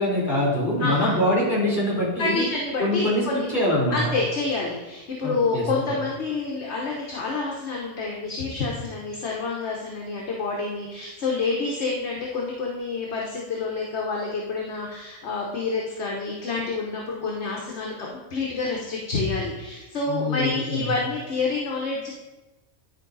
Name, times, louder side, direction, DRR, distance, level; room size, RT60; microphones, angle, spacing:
voice 1, 0.0-2.4 2.8-4.0 5.2-5.7 20.1-20.9, left 1 dB, 35° left, -6 dB, 3.3 m, -24 dB
voice 2, 0.8-1.1 2.2-3.5 3.9-22.1, left 3 dB, 65° left, -2 dB, 1.3 m, -28 dB
10.5 x 4.7 x 4.0 m, 1.1 s
omnidirectional pair, 1.3 m